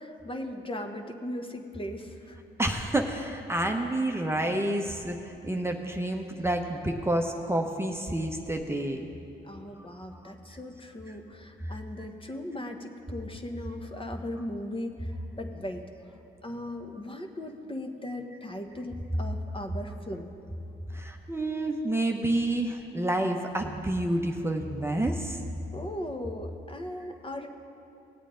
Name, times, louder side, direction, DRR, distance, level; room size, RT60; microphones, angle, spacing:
voice 1, 0.0-2.4 9.4-15.1 15.4-15.8 16.4-20.3 25.7-27.5, left 1 dB, 25° left, 4 dB, 1.2 m, -38 dB
voice 2, 2.6-5.2 5.4-9.0 10.1-10.3 11.1-11.2 11.6-12.1 20.9-25.4, right 1 dB, 10° right, 2 dB, 0.9 m, -29 dB
18.0 x 8.2 x 3.8 m, 2.8 s
supercardioid pair, 55°, 21 cm